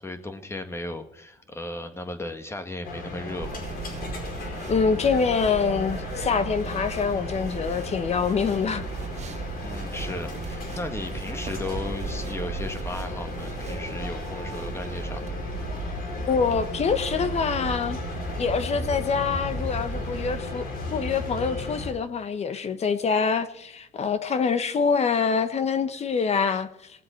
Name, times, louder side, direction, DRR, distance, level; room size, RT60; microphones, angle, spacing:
voice 1, 0.0-3.6 9.6-15.2, left 2 dB, 15° left, 1.7 m, -35 dB
sound 1, 2.8-21.9, left 2 dB, 70° left, 4.8 m, -35 dB
sound 2, 3.4-20.4, right 4 dB, 40° right, 1.1 m, -36 dB
voice 2, 4.7-8.8 16.2-18.0 18.4-27.0, left 5 dB, 40° left, 1.1 m, -25 dB
20.0 x 7.6 x 4.4 m
cardioid pair, 110°, 17 cm